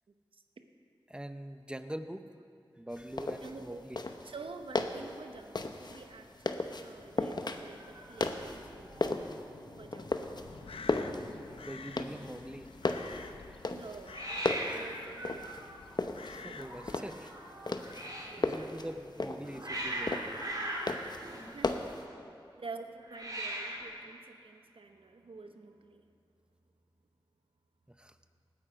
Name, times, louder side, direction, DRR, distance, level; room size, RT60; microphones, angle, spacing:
voice 1, 0.3-0.6 3.4-3.9 4.2-9.0 9.8-10.4 13.7-14.2 14.6-15.7 18.3-18.8 21.4-21.9 22.6-26.0, right 4 dB, 75° right, 6 dB, 0.9 m, -48 dB
voice 2, 1.1-2.3 2.8-4.0 11.6-12.7 13.5-13.6 14.7-14.8 16.3-17.3 17.8-20.5 27.9-28.2, right 1 dB, 10° right, 9 dB, 0.7 m, -44 dB
sound 1, 2.9-22.0, left 3 dB, 50° left, 0.9 m, -37 dB
Hiss, 7.8-9.1 9.4-9.9 10.1-10.2 10.4-11.1 14.1-18.4 19.1-22.1 23.0-24.0, right 1 dB, 45° right, 3.0 m, -41 dB
Crow, 10.2-17.0, left 5 dB, 85° left, 0.6 m, -50 dB
18.5 x 9.6 x 5.0 m, 2.5 s
cardioid pair, 50°, 9 cm